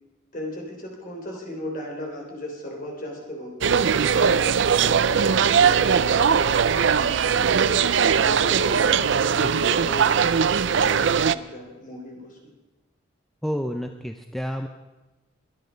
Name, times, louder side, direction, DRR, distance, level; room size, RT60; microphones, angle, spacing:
voice 1, 0.3-7.4 8.1-12.5, equal, 40° left, 0 dB, 3.7 m, -37 dB
sound 1, 3.6-11.3, right 6 dB, 65° right, 0.5 m, -20 dB
voice 2, 13.4-14.7, equal, ahead, 5 dB, 0.6 m, -29 dB
23.0 x 10.5 x 5.2 m, 1.1 s
head